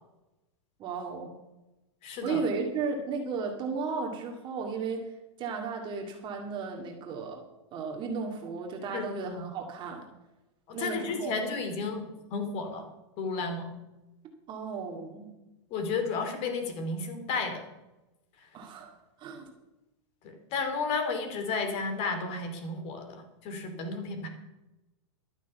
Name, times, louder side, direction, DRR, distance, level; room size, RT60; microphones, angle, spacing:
voice 1, 0.8-1.3 2.2-5.1 5.4-7.4 7.7-10.1 10.7-11.4 14.5-15.3 18.5-18.9 19.2-19.5, right 5 dB, 30° right, 2 dB, 2.0 m, -34 dB
voice 2, 2.0-2.4 8.9-9.4 10.7-12.0 12.3-12.9 13.2-13.7 15.7-17.7 20.2-24.3, left 4 dB, 40° left, 7 dB, 2.9 m, -33 dB
12.0 x 9.1 x 7.0 m, 1.0 s
hypercardioid pair, 135°, 15 cm